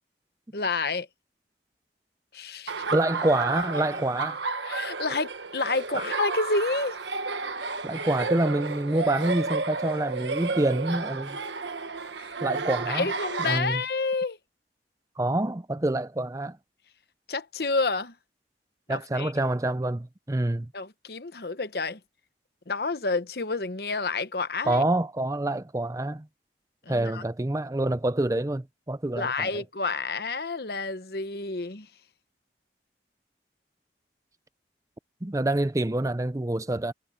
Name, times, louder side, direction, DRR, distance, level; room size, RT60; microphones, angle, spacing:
voice 1, 0.5-1.1 2.3-3.0 4.6-7.0 12.2-12.3 12.9-14.4 17.3-18.1 18.9-19.3 20.7-22.0 22.7-24.8 26.9-27.2 29.2-31.9, left 3 dB, 60° left, 1.0 m, -29 dB
Laughter, 2.7-13.6, right 4 dB, 85° right, 1.4 m, -32 dB
voice 2, 2.9-4.4 5.9-6.0 7.8-11.4 12.4-13.1 13.4-13.8 15.2-16.6 18.9-20.7 24.7-26.3 26.9-29.6 35.2-36.9, right 1 dB, 20° right, 0.5 m, -27 dB
head